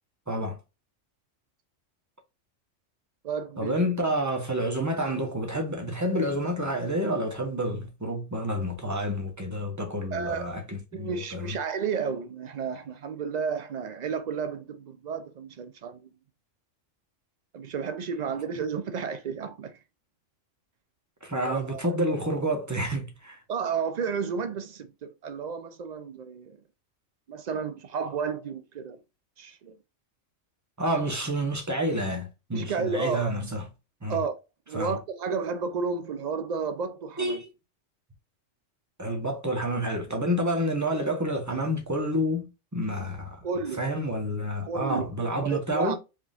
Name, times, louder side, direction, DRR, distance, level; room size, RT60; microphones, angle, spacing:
voice 1, 0.3-0.6 3.6-11.6 21.2-23.4 30.8-33.6 34.0-34.2 34.7-35.0 37.2-37.5 39.0-43.4 43.8-46.0, equal, 15° right, 1.1 m, -29 dB
voice 2, 3.2-3.8 10.1-10.5 10.9-16.0 17.5-19.8 21.5-21.9 23.5-26.6 27.3-29.0 29.4-29.8 32.5-33.4 34.1-34.4 34.7-37.4 43.4-43.8 44.6-45.0 45.4-45.9, right 6 dB, 85° right, 0.3 m, -32 dB
4.7 x 3.7 x 2.4 m
omnidirectional pair, 1.3 m